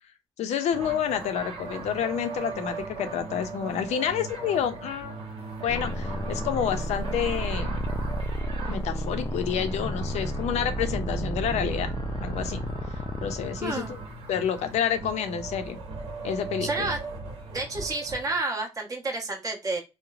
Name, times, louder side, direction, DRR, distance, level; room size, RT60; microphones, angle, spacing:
voice 1, 0.4-5.1 5.6-7.8 8.7-11.9 12.2-12.6 13.2-14.0 14.3-15.8 16.2-16.9, left 8 dB, 85° left, 0.5 m, -29 dB
sound 1, 0.7-18.3, right 3 dB, 60° right, 1.0 m, -39 dB
sound 2, 5.7-14.1, equal, 30° left, 0.4 m, -32 dB
voice 2, 13.6-13.9 16.6-17.0 17.5-19.8, right 3 dB, 30° right, 0.9 m, -30 dB
3.1 x 2.0 x 2.4 m
cardioid pair, 95°, 11 cm